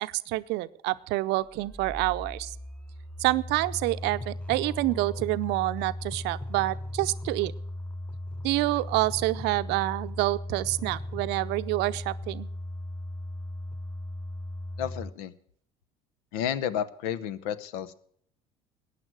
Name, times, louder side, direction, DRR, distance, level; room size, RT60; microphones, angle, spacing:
voice 1, 0.0-2.5 3.2-7.5 8.4-12.5, right 19 dB, 65° right, 14 dB, 0.6 m, -27 dB
sound 1, 1.4-15.1, left 1 dB, 5° left, 0.9 m, -37 dB
voice 2, 14.8-15.3 16.3-17.9, left 9 dB, 75° left, 17 dB, 0.9 m, -31 dB
15.0 x 9.7 x 6.2 m, 0.62 s
hypercardioid pair, 65°, 19 cm